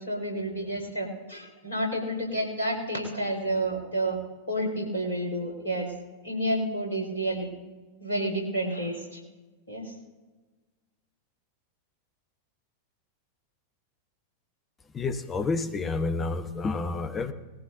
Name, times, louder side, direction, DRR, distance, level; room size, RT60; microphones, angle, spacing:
voice 1, 0.0-4.2 4.5-5.9 6.2-7.5 8.0-9.2 9.7-9.9, right 1 dB, 75° left, -1 dB, 4.4 m, -30 dB
voice 2, 14.9-17.3, left 3 dB, 20° left, 8 dB, 0.9 m, -29 dB
20.0 x 14.5 x 2.7 m, 1.2 s
figure-of-eight pair, 90°, 0 cm